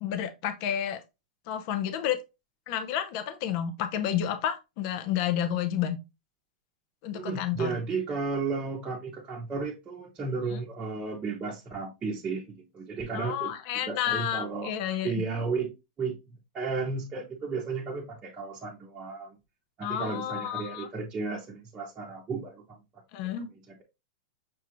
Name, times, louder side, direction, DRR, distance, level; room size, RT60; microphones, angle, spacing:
voice 1, 0.0-1.0 1.5-2.2 2.7-6.0 7.0-7.7 10.5-10.6 13.1-15.2 19.8-20.9 23.1-23.5, left 10 dB, 50° left, 0.6 m, -30 dB
voice 2, 7.1-13.6 13.9-14.7 15.0-19.4 19.8-22.8 23.5-23.8, right 4 dB, 20° right, 0.9 m, -34 dB
6.0 x 2.4 x 2.9 m
hypercardioid pair, 135°, 4 cm